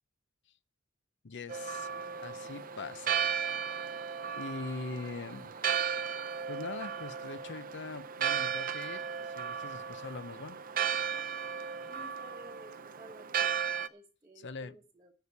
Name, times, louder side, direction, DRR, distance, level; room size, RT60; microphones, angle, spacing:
voice 1, 1.2-1.9 2.2-3.3 4.4-5.5 6.5-10.6 14.4-14.8, left 3 dB, 60° left, 0.7 m, -42 dB
Church bell, 1.5-13.9, right 7 dB, 45° right, 0.6 m, -35 dB
voice 2, 11.9-13.4 13.9-15.1, equal, 15° right, 1.2 m, -54 dB
11.5 x 6.9 x 8.2 m
head